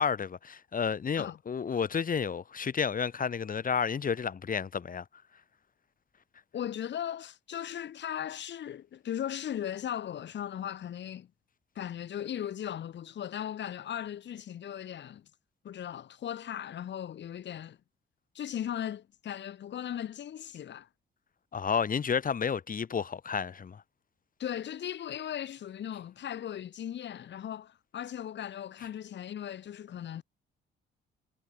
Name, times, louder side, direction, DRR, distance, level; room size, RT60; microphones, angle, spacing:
voice 1, 0.0-5.0 21.5-23.8, left 6 dB, 45° left, 4.3 m, -31 dB
voice 2, 6.5-11.3 11.8-15.2 15.6-17.8 18.3-20.9 24.4-30.2, left 10 dB, 65° left, 4.0 m, -37 dB
cardioid pair, 90°, 20 cm